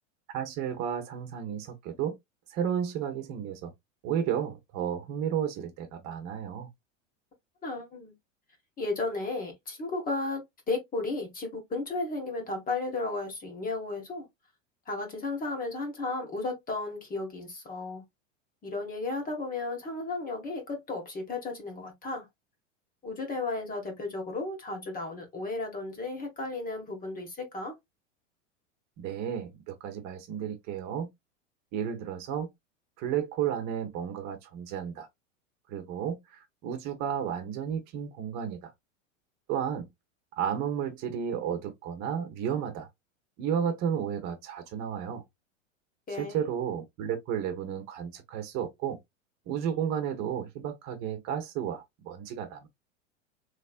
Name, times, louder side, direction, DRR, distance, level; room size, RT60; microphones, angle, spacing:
voice 1, 0.3-2.2 2.5-3.7 4.0-6.7 29.0-31.1 31.7-32.5 33.0-35.1 35.7-38.7 39.5-39.9 40.4-42.9 43.4-45.2 46.1-49.0 49.5-52.7, right 8 dB, 45° right, 1.1 m, -32 dB
voice 2, 7.6-8.1 8.8-14.3 14.9-18.0 18.6-22.3 23.0-27.7 46.1-46.4, left 3 dB, 20° left, 1.5 m, -34 dB
3.3 x 3.2 x 2.4 m
hypercardioid pair, 110°, 39 cm